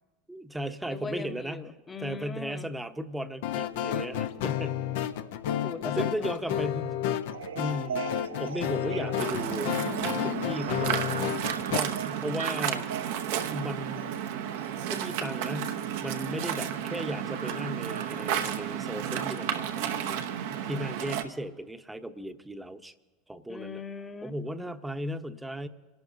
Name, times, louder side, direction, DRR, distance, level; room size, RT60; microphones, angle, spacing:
voice 1, 0.3-1.7 2.0-4.8 5.8-7.0 7.5-8.1 8.4-9.7 10.2-11.1 11.7-12.9 13.5-14.2 14.9-22.9 23.3-23.8 24.2-25.7, equal, 5° right, 9 dB, 1.0 m, -36 dB
voice 2, 0.8-2.7 5.6-6.6 8.3-8.4 9.9-10.6 16.2-16.8 23.5-24.7, left 5 dB, 20° left, 9 dB, 1.0 m, -41 dB
sound 1, 3.4-11.8, left 10 dB, 65° left, 0.8 m, -31 dB
sound 2, 7.3-18.8, right 8 dB, 80° right, 0.4 m, -41 dB
Waves surf, 9.2-21.2, right 9 dB, 65° right, 0.9 m, -32 dB
28.0 x 11.5 x 2.7 m, 1.2 s
figure-of-eight pair, 80°, 0 cm